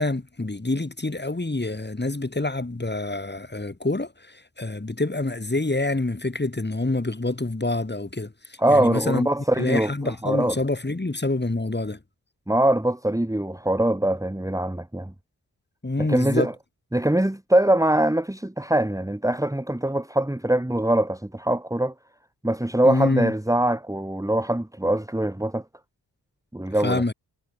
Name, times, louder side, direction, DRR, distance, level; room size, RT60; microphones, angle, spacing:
voice 1, 0.0-9.3 9.6-12.0 15.8-16.5 22.8-23.3 26.8-27.1, left 2 dB, 25° left, 7.2 m, -26 dB
voice 2, 8.6-10.5 12.5-15.1 16.0-16.5 16.9-21.9 22.4-25.6 26.5-27.0, right 1 dB, 10° right, 2.4 m, -23 dB
cardioid pair, 60°, 39 cm